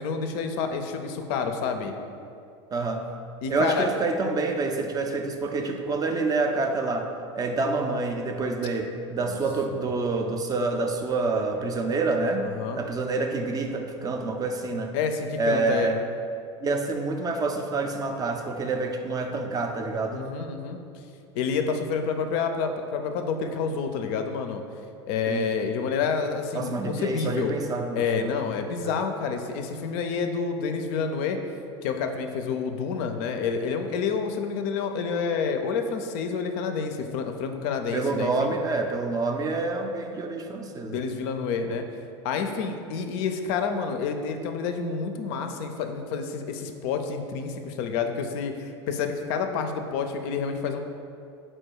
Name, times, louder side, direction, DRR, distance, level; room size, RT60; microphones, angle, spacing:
voice 1, 0.0-1.9 3.4-3.9 9.2-9.4 9.7-9.8 12.4-12.8 14.9-15.9 20.1-20.8 21.3-24.6 25.1-27.5 28.0-31.4 31.8-38.6 40.8-41.8 42.2-50.8, left 5 dB, 55° left, 6 dB, 0.4 m, -28 dB
voice 2, 2.7-3.1 3.5-12.5 12.8-14.9 15.4-16.0 16.6-20.3 25.3-25.5 26.5-28.4 28.8-29.0 37.9-41.0, right 3 dB, 25° right, 4 dB, 0.4 m, -27 dB
4.3 x 2.2 x 4.5 m, 2.5 s
hypercardioid pair, 85°, 15 cm